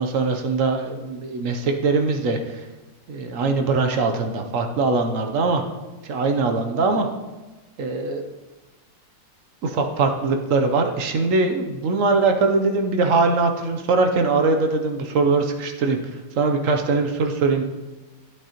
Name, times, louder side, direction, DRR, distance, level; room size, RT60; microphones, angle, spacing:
voice 1, 0.0-2.6 3.1-5.6 6.0-7.1 7.8-8.2 9.6-17.6, right 3 dB, 60° right, 5 dB, 0.8 m, -22 dB
11.0 x 8.3 x 2.9 m, 1.2 s
omnidirectional pair, 2.0 m